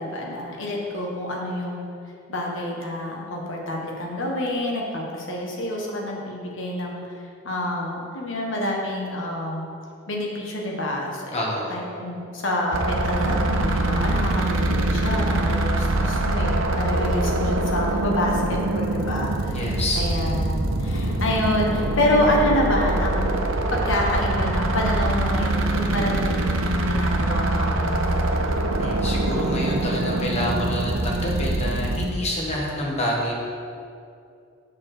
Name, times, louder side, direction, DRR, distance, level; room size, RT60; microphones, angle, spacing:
voice 1, 0.0-1.8 2.3-7.0 7.4-9.6 10.1-19.6 20.0-23.3 23.7-28.4, left 1 dB, 60° left, -2 dB, 1.3 m, -27 dB
voice 2, 11.3-11.7 19.5-20.0 28.8-33.3, left 1 dB, 30° left, -3 dB, 1.3 m, -27 dB
sound 1, 12.7-32.1, right 2 dB, 70° right, 0.7 m, -24 dB
7.1 x 4.4 x 6.5 m, 2.5 s
head